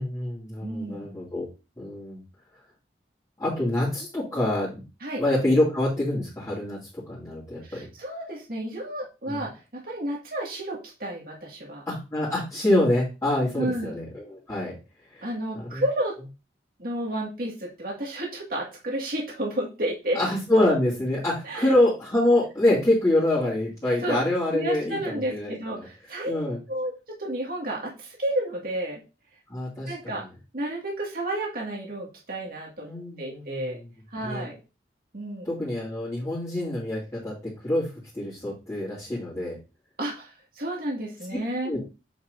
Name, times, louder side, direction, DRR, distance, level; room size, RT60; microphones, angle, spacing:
voice 1, 0.0-1.5 1.8-2.2 3.4-4.8 5.2-6.8 7.1-7.8 9.3-9.4 11.9-14.8 15.1-15.3 15.5-15.8 20.1-25.9 26.2-26.6 29.5-30.3 32.8-33.8 34.2-34.5 35.4-37.3 37.6-37.9 38.1-39.6 41.6-41.8, left 1 dB, 20° left, -9 dB, 2.6 m, -26 dB
voice 2, 0.6-1.1 5.0-5.2 7.6-11.8 13.6-14.0 15.2-16.2 16.8-20.2 21.4-21.8 24.0-24.2 24.5-26.3 26.7-29.0 29.9-30.2 30.5-32.9 33.2-33.8 34.1-34.6 35.1-35.5 40.0-41.7, right 1 dB, 55° right, -1 dB, 2.1 m, -31 dB
8.2 x 6.0 x 2.7 m, 0.29 s
head